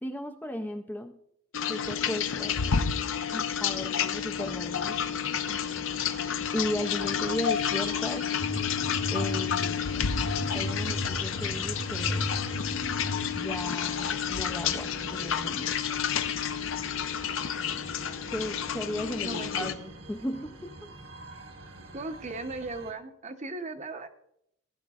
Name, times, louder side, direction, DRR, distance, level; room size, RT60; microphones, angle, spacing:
voice 1, 0.0-1.2 1.7-2.6 3.3-5.0 6.1-8.3 9.1-9.9 10.5-12.3 13.4-15.8 18.3-20.9, left 1 dB, 10° left, 6 dB, 0.4 m, -36 dB
sound 1, 1.5-19.7, left 8 dB, 65° left, 0.5 m, -30 dB
sound 2, 4.3-22.9, right 2 dB, 65° right, 1.2 m, -46 dB
sound 3, 8.4-13.4, left 1 dB, 80° left, 2.1 m, -35 dB
voice 2, 19.2-19.7 21.9-24.1, right 2 dB, 35° right, 8 dB, 0.7 m, -37 dB
16.0 x 10.0 x 2.3 m, 0.74 s
head